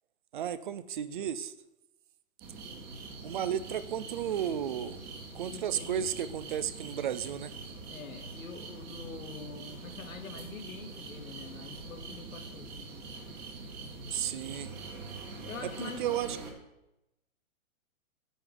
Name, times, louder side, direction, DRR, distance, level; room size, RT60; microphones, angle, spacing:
voice 1, 0.3-1.5 3.2-5.0 5.3-7.5 14.1-14.7 15.8-16.3, right 9 dB, 40° right, 15 dB, 0.5 m, -33 dB
sound 1, 2.4-16.5, right 3 dB, 20° right, 1.4 m, -44 dB
voice 2, 5.5-6.0 7.9-12.8 15.3-16.3, left 5 dB, 75° left, 5 dB, 2.0 m, -45 dB
9.8 x 9.2 x 3.9 m, 0.91 s
hypercardioid pair, 145°, 41 cm